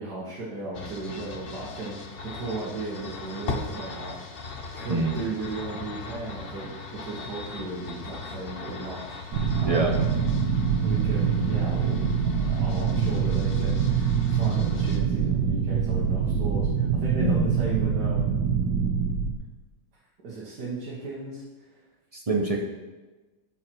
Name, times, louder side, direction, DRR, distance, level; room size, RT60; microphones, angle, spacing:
voice 1, 0.0-9.9 10.8-12.0 12.4-18.3 20.2-21.4, right 3 dB, 65° right, -5 dB, 2.0 m, -36 dB
sound 1, 0.7-15.0, left 4 dB, 45° left, 0.7 m, -39 dB
sound 2, 9.3-19.3, right 6 dB, 85° right, 1.5 m, -24 dB
voice 2, 22.3-22.6, right 2 dB, 45° right, 1 dB, 0.4 m, -25 dB
12.0 x 5.6 x 4.6 m, 1.2 s
omnidirectional pair, 1.9 m